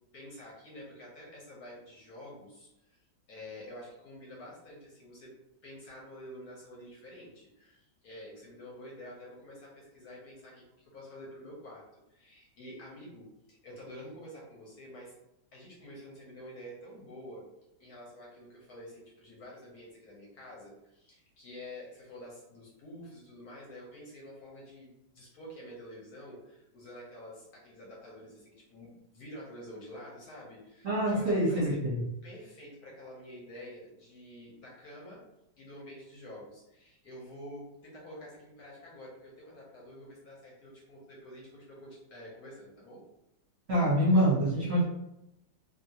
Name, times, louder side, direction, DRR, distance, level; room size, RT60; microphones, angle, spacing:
voice 1, 0.1-5.3 5.6-11.8 12.1-15.1 15.5-17.5 17.8-31.8 32.2-35.2 35.6-43.0, left 1 dB, 65° left, -4 dB, 1.1 m, -48 dB
voice 2, 30.8-32.0 43.7-44.8, equal, 50° right, -8 dB, 0.9 m, -25 dB
2.7 x 2.6 x 2.7 m, 0.86 s
omnidirectional pair, 2.0 m